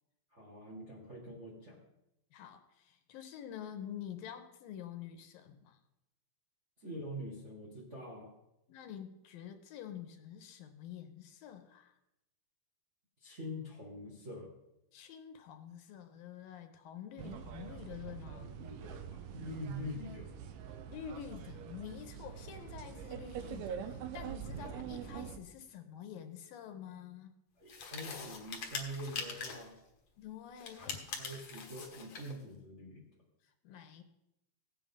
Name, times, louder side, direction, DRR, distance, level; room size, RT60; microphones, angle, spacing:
voice 1, 0.3-1.8 6.8-8.3 13.2-14.5 18.3-20.3 27.6-29.8 30.7-33.1, equal, 40° right, -3 dB, 1.0 m, -45 dB
voice 2, 2.3-5.8 8.7-12.0 14.9-18.5 20.9-27.3 30.2-31.2 33.4-34.0, left 9 dB, 80° left, 7 dB, 2.5 m, -48 dB
sound 1, 17.2-25.4, right 8 dB, 80° right, 2.7 m, -44 dB
sound 2, 27.7-29.7 30.6-32.4, left 5 dB, 60° left, 1.4 m, -43 dB
16.5 x 8.5 x 3.7 m, 0.88 s
omnidirectional pair, 4.3 m